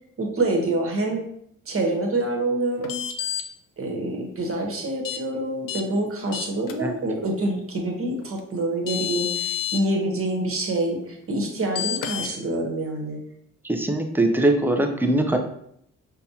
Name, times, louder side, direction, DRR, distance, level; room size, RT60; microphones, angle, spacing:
voice 1, 0.2-1.2 1.7-3.0 3.8-13.2, right 2 dB, 35° right, 1 dB, 1.2 m, -26 dB
sound 1, 2.8-3.4 5.0-5.2 5.7-5.8 6.3-6.7 8.4-8.5 8.9-9.8 11.8-12.3, left 10 dB, 55° left, 0.6 m, -28 dB
voice 2, 13.6-15.4, right 1 dB, 5° right, 4 dB, 0.6 m, -21 dB
5.4 x 2.2 x 2.8 m, 0.70 s
hypercardioid pair, 45°, 38 cm